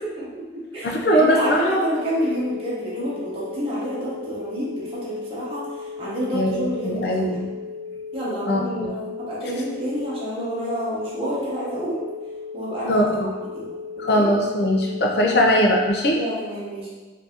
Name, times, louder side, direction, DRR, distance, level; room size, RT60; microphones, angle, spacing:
voice 1, 0.0-7.4 8.1-12.0 12.5-13.0 13.5-13.7 14.1-14.3 15.1-15.4 16.1-16.9, right 1 dB, 30° right, -9 dB, 0.9 m, -28 dB
voice 2, 0.8-1.6 6.3-7.5 8.5-8.6 12.9-13.3 14.0-16.2, equal, 55° left, 0 dB, 0.5 m, -20 dB
sound 1, 1.1-15.9, left 5 dB, 5° right, 0.6 m, -36 dB
4.5 x 2.6 x 2.8 m, 1.3 s
head